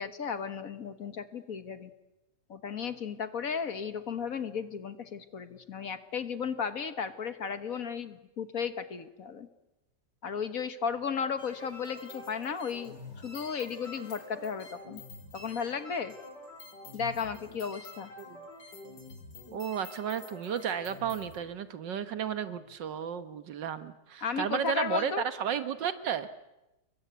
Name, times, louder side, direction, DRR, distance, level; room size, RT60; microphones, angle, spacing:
voice 1, 0.0-1.9 2.5-9.5 10.2-15.0 15.3-16.1 16.9-18.1 24.2-25.2, left 6 dB, 55° left, 10 dB, 1.7 m, -34 dB
sound 1, 11.4-21.4, left 2 dB, 75° left, 4.9 m, -48 dB
voice 2, 19.5-26.3, right 8 dB, 85° right, 11 dB, 2.0 m, -33 dB
29.0 x 22.5 x 8.2 m, 0.96 s
omnidirectional pair, 1.9 m